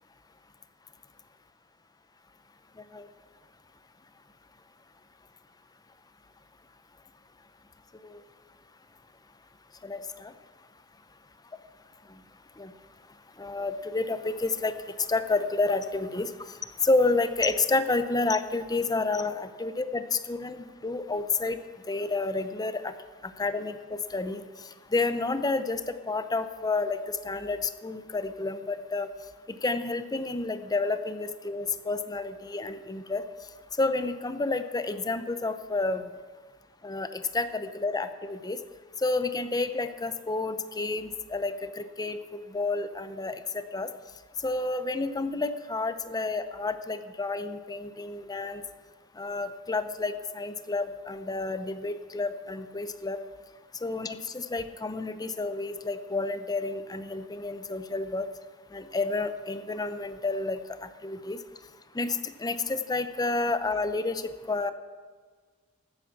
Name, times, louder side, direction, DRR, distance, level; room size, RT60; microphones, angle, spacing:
voice 1, 9.8-10.3 12.6-12.7 13.4-14.7 15.1-16.3 16.8-21.6 21.9-22.9 23.2-24.4 24.9-29.1 29.5-33.2 33.8-36.0 36.8-38.6 39.0-43.9 44.4-48.6 49.2-53.2 53.8-58.3 58.7-61.4 61.9-64.7, left 3 dB, 15° left, 10 dB, 0.6 m, -30 dB
13.5 x 9.3 x 5.9 m, 1.5 s
head